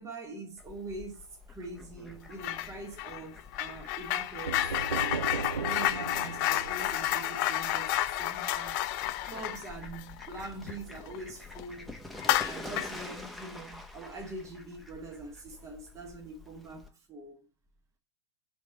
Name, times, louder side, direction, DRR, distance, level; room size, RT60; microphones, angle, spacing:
voice 1, 0.0-5.3 5.6-8.9 9.3-11.9 12.4-17.5, right 3 dB, 20° right, 1.8 m, -43 dB
Fowl, 0.6-16.9, left 2 dB, ahead, 1.2 m, -48 dB
sound 1, 2.4-2.7 3.0-11.2 11.5-11.6 12.2-13.0, left 14 dB, 45° left, 0.5 m, -31 dB
sound 2, 4.5-8.2, right 5 dB, 85° right, 0.6 m, -37 dB
5.1 x 4.6 x 5.0 m
figure-of-eight pair, 100°, 15 cm